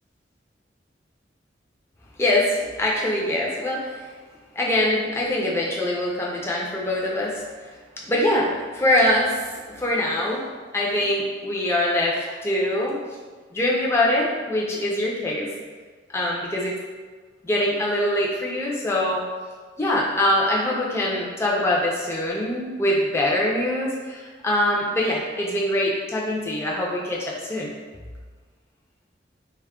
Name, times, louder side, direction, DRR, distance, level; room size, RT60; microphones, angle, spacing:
voice 1, 2.2-4.0 4.6-7.4 8.1-10.4 10.7-13.0 13.5-15.5 16.1-16.7 17.4-19.3 19.8-27.7, left 1 dB, 15° left, -4 dB, 0.4 m, -23 dB
2.2 x 2.1 x 3.5 m, 1.5 s
head